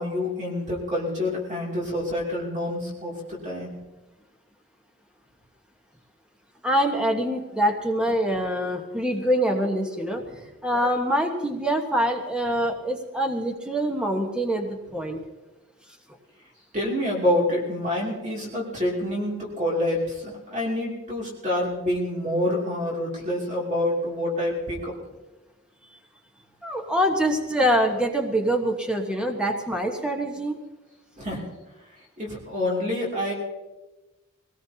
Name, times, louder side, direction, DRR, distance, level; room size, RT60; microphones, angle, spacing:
voice 1, 0.0-3.7 10.3-10.4 16.7-25.0 31.2-31.5 32.2-33.3, left 1 dB, 35° right, -3 dB, 2.8 m, -27 dB
voice 2, 6.6-10.2 10.6-15.2 26.6-30.6, equal, 5° right, 2 dB, 1.3 m, -25 dB
23.0 x 18.5 x 2.9 m, 1.1 s
head